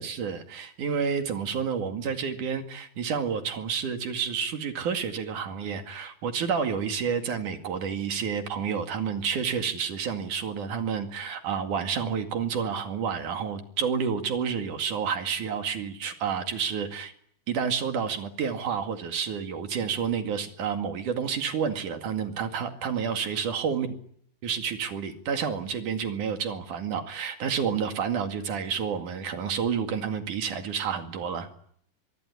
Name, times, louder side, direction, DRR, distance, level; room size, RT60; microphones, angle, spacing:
voice 1, 0.0-17.1 17.5-23.9 24.4-31.5, right 6 dB, 60° right, 6 dB, 3.6 m, -29 dB
24.0 x 24.0 x 9.8 m, 0.67 s
omnidirectional pair, 4.2 m